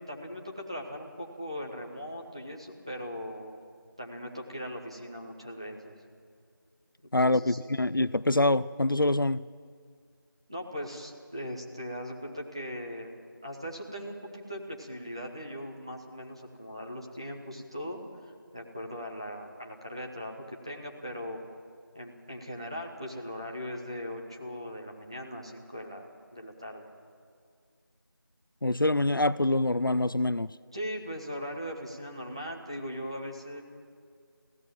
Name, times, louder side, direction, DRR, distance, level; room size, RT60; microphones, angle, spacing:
voice 1, 0.0-3.6 4.0-5.9 7.2-7.8 10.5-21.4 21.9-26.9 30.7-33.6, equal, 15° right, 1.3 m, -39 dB
voice 2, 7.1-9.4 28.6-30.5, left 2 dB, 65° left, 0.6 m, -25 dB
25.0 x 16.5 x 7.4 m
figure-of-eight pair, 175°, 12 cm